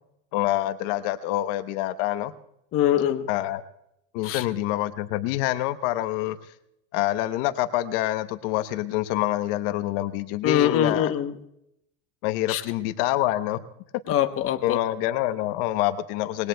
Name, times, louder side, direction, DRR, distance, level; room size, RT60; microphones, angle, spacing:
voice 1, 0.3-2.3 3.3-3.6 4.1-6.4 6.9-11.1 12.2-13.6 14.6-16.5, left 15 dB, 60° left, 11 dB, 0.9 m, -26 dB
voice 2, 2.7-3.3 4.2-4.4 10.4-11.3 12.5-12.6 14.1-14.8, left 10 dB, 35° left, 8 dB, 0.9 m, -23 dB
25.5 x 21.0 x 2.2 m, 0.79 s
supercardioid pair, 125°, 40 cm